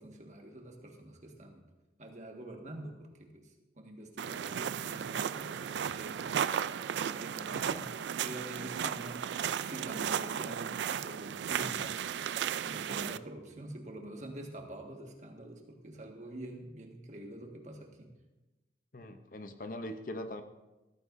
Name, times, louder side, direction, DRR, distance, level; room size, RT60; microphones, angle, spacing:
voice 1, 0.0-1.7 2.0-6.4 7.0-9.3 9.6-12.0 12.6-18.1, right 1 dB, 40° right, 2 dB, 1.6 m, -46 dB
sound 1, 4.2-13.2, right 8 dB, 80° right, 0.3 m, -35 dB
voice 2, 7.5-7.9 18.9-20.4, left 1 dB, 50° left, 8 dB, 0.7 m, -42 dB
15.0 x 14.0 x 2.6 m, 1.1 s
head